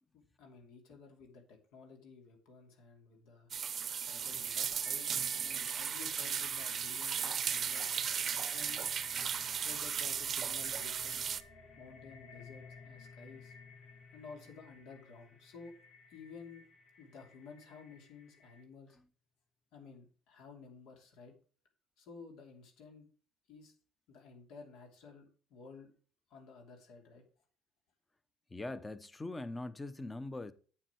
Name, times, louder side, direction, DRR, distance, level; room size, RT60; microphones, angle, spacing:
voice 1, 0.1-3.5 3.9-5.1 5.4-8.0 8.5-8.9 9.5-11.3 11.8-13.6 14.1-15.7 16.1-16.6 17.0-19.0 19.7-21.3 22.0-23.1 23.5-23.7 24.1-25.9 26.3-27.2, left 5 dB, 75° left, 2.8 m, -53 dB
sound 1, 3.5-11.4, right 7 dB, 40° right, 0.7 m, -36 dB
sound 2, 4.3-18.6, left 3 dB, 50° left, 3.3 m, -57 dB
sound 3, 4.8-17.1, left 4 dB, 35° left, 3.5 m, -59 dB
voice 2, 28.5-30.5, left 2 dB, 15° left, 0.8 m, -41 dB
8.0 x 7.3 x 4.6 m
cardioid pair, 105°, 0 cm